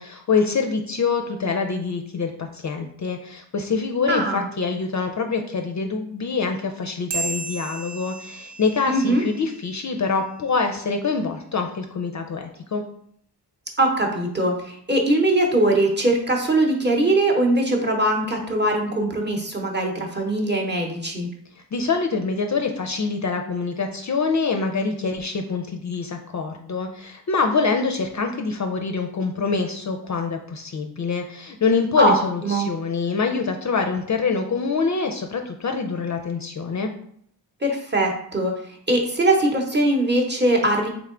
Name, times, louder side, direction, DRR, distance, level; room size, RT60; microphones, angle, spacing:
voice 1, 0.0-12.8 21.7-36.9, left 4 dB, 45° left, 4 dB, 0.4 m, -25 dB
voice 2, 4.1-4.5 8.9-9.2 13.8-21.3 32.0-32.1 32.4-32.7 37.6-40.9, right 1 dB, 25° right, 1 dB, 0.8 m, -21 dB
sound 1, 7.1-10.0, right 4 dB, 85° right, 0.8 m, -34 dB
3.6 x 3.3 x 3.7 m, 0.66 s
wide cardioid pair, 130°, 42 cm